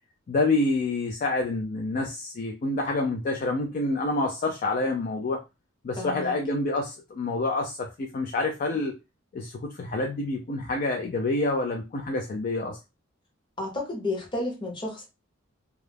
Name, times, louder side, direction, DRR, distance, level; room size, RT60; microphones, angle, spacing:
voice 1, 0.3-5.4 5.8-9.0 9.3-12.8, left 2 dB, 45° left, 0.3 m, -27 dB
voice 2, 6.0-6.3 13.6-15.1, left 2 dB, 25° left, 0.8 m, -31 dB
2.3 x 2.0 x 3.2 m
head